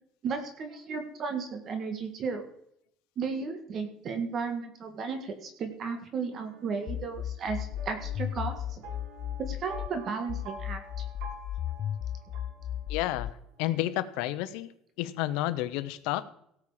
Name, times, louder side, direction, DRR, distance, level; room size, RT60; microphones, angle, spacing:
voice 1, 0.2-2.4 3.2-8.8 9.4-11.0, right 5 dB, 35° right, 7 dB, 1.7 m, -34 dB
sound 1, 6.3-13.3, right 3 dB, 75° right, 2.2 m, -48 dB
sound 2, 6.9-9.9 10.3-13.3, left 11 dB, 40° left, 0.4 m, -35 dB
voice 2, 12.9-13.3 13.6-14.7 15.0-16.2, left 15 dB, 75° left, 12 dB, 1.0 m, -30 dB
17.5 x 7.4 x 5.0 m, 0.73 s
cardioid pair, 155°, 0 cm